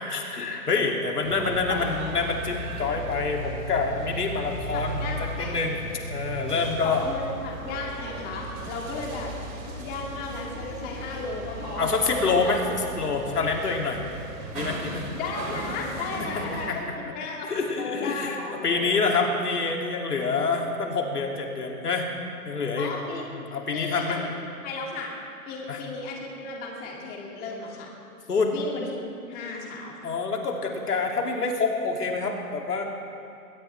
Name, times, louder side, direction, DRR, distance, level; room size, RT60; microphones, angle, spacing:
voice 1, 0.0-5.8 6.1-7.0 11.8-12.6 13.0-14.0 14.5-15.1 16.4-16.8 17.5-18.4 18.6-22.1 22.4-22.9 23.3-24.2 25.7-25.8 28.3-28.5 30.0-32.8, left 4 dB, 80° left, 1 dB, 2.8 m, -27 dB
sound 1, 1.2-16.7, right 2 dB, 30° right, 3.2 m, -36 dB
voice 2, 4.7-5.6 6.8-9.3 9.6-12.5 15.1-19.3 22.8-23.3 23.7-24.4 24.6-25.2 25.5-27.9 28.5-29.0 29.3-30.1, left 3 dB, 20° left, -1 dB, 2.4 m, -35 dB
21.5 x 19.0 x 3.4 m, 2.6 s
hypercardioid pair, 145°, 46 cm